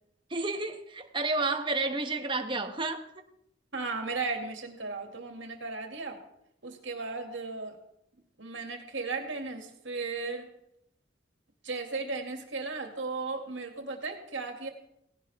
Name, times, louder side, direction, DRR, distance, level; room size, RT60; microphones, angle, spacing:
voice 1, 0.3-3.0, right 3 dB, 25° right, 1.2 m, -31 dB
voice 2, 3.7-6.2 6.6-7.8 8.4-10.5 11.6-14.7, right 3 dB, 75° right, 2.4 m, -35 dB
17.5 x 16.5 x 3.6 m
head